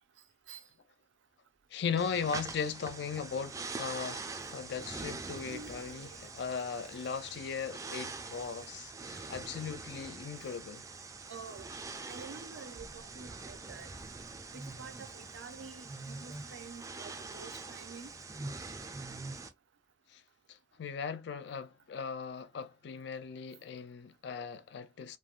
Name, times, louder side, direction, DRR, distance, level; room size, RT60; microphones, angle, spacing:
voice 1, 1.7-10.8 20.1-20.2 20.5-25.2, left 6 dB, 65° left, 0.4 m, -38 dB
sound 1, 2.0-19.5, right 3 dB, 15° right, 0.3 m, -44 dB
voice 2, 5.4-6.3 11.3-11.7 12.0-13.9 14.5-18.1, right 5 dB, 85° right, 0.6 m, -49 dB
3.2 x 2.1 x 2.4 m
head